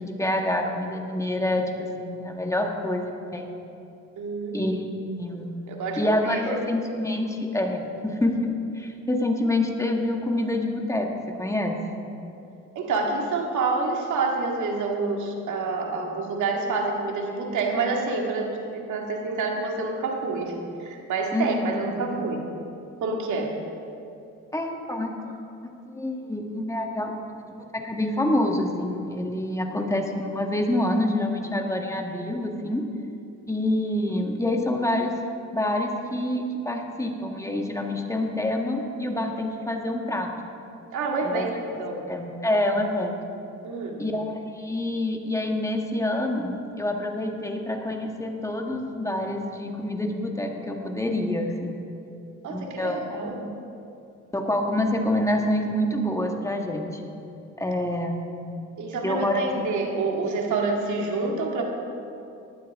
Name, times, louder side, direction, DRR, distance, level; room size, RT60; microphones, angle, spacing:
voice 1, 0.0-3.5 4.5-4.8 5.2-5.6 6.0-11.8 21.3-21.8 24.5-25.3 25.9-27.4 27.7-32.9 33.5-35.2 35.5-40.3 41.2-41.5 42.1-43.2 44.0-51.8 52.5-53.4 54.3-57.0 57.6-58.4 59.0-59.7, left 1 dB, 10° left, 2 dB, 1.7 m, -27 dB
voice 2, 4.2-4.7 5.7-6.6 12.8-20.5 20.8-22.4 23.0-23.5 40.9-42.1 43.6-44.0 52.4-53.4 58.8-61.6, right 3 dB, 75° right, 0 dB, 2.2 m, -28 dB
18.5 x 12.0 x 3.7 m, 2.7 s
cardioid pair, 90°, 30 cm